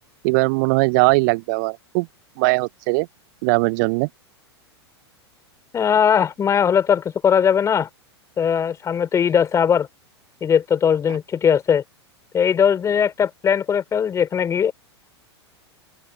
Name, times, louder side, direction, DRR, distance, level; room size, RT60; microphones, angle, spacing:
voice 1, 0.2-2.1 2.4-3.1 3.4-4.1, right 28 dB, 45° right, 1.2 m, -19 dB
voice 2, 5.7-7.9 8.4-9.9 10.4-11.8 12.3-14.7, left 7 dB, 20° left, 5.0 m, -19 dB
open air
figure-of-eight pair, 95°, 14 cm